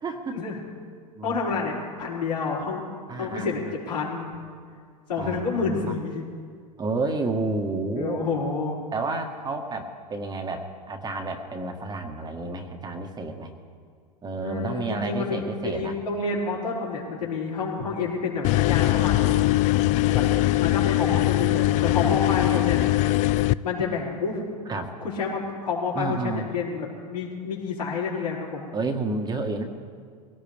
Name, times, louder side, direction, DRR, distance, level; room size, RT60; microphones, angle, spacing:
voice 1, 0.0-0.4 1.1-1.8 3.1-3.6 5.2-5.9 6.8-8.3 8.9-13.5 14.2-16.0 19.9-20.5 24.7-24.9 25.9-26.4 28.7-29.6, right 3 dB, 20° right, 4 dB, 1.6 m, -31 dB
voice 2, 1.2-2.8 3.2-4.3 5.1-6.2 7.9-8.8 14.4-15.4 15.6-19.5 20.1-20.3 20.6-22.8 23.6-24.4 25.0-28.7, left 4 dB, 80° left, -5 dB, 5.0 m, -29 dB
sound 1, 18.4-23.5, left 16 dB, 35° left, 0.3 m, -21 dB
22.5 x 17.5 x 3.5 m, 2.1 s
hypercardioid pair, 100°, 21 cm